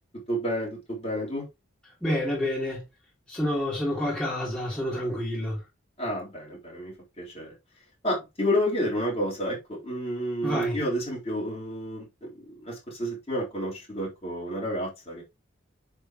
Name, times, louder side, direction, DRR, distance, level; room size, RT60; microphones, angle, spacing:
voice 1, 0.3-1.5 6.0-7.5 8.0-15.2, equal, 30° left, 3.6 m, -30 dB
voice 2, 2.0-2.8 3.3-5.6 10.4-10.8, left 1 dB, 5° left, 3.1 m, -28 dB
6.8 x 6.7 x 3.0 m
head